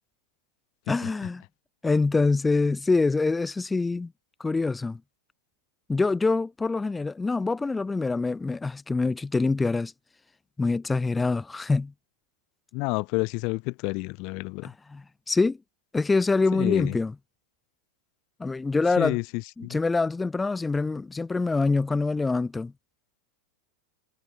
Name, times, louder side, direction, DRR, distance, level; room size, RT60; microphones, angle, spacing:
voice 1, 0.9-1.4 1.8-4.1 4.4-5.0 5.9-9.9 10.6-11.9 14.6-15.6 15.9-17.1 18.4-19.2 19.6-22.7, left 3 dB, 10° left, 0.7 m, -25 dB
voice 2, 12.7-14.7 16.5-16.9 19.0-19.8, left 30 dB, 50° left, 0.7 m, -29 dB
hypercardioid pair, 125°, 0 cm